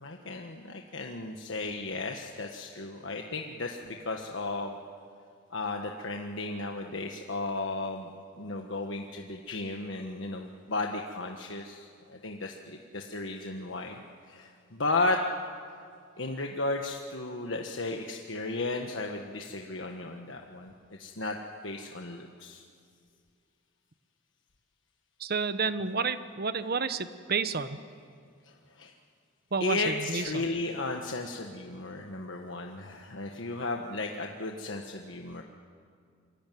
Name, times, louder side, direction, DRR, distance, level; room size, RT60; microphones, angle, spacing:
voice 1, 0.0-4.8 5.5-8.1 8.4-14.0 14.3-15.2 16.2-20.7 21.0-21.4 21.6-22.6 28.8-28.9 29.6-35.4, left 2 dB, 70° left, 2 dB, 1.4 m, -34 dB
voice 2, 25.2-27.8 29.5-30.5, right 5 dB, 55° right, 11 dB, 1.1 m, -30 dB
27.0 x 23.0 x 9.3 m, 2.3 s
head